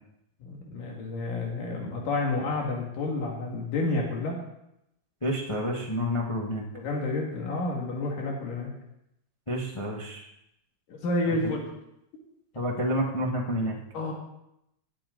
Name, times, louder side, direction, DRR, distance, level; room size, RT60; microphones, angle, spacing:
voice 1, 0.4-4.4 6.7-8.7 10.9-11.7 13.9-14.1, left 2 dB, 85° left, -1 dB, 3.8 m, -30 dB
voice 2, 5.2-6.7 9.5-10.3 11.3-11.4 12.5-13.8, equal, 55° left, -2 dB, 0.3 m, -29 dB
18.5 x 8.8 x 3.9 m, 0.81 s
omnidirectional pair, 3.8 m